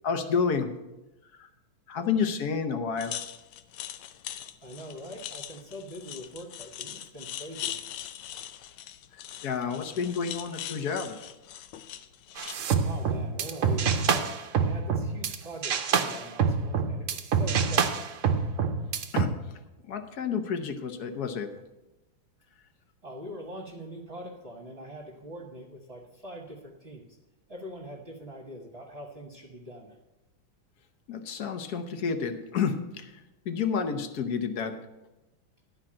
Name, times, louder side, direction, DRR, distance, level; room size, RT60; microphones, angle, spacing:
voice 1, 0.0-0.7 1.4-1.5 1.9-3.2 9.4-11.2 19.1-19.3 19.9-21.5 31.1-33.1 33.4-34.8, left 6 dB, 60° left, 8 dB, 1.2 m, -30 dB
sound 1, 3.0-12.5, left 11 dB, 80° left, 1.5 m, -41 dB
voice 2, 4.6-7.8 12.4-12.5 12.8-18.1 23.0-27.1 27.5-30.0, equal, 35° right, -2 dB, 1.4 m, -43 dB
sound 2, 12.4-15.3 15.6-19.2, right 6 dB, 60° right, 0.8 m, -26 dB
11.5 x 5.1 x 8.7 m, 1.0 s
omnidirectional pair, 2.3 m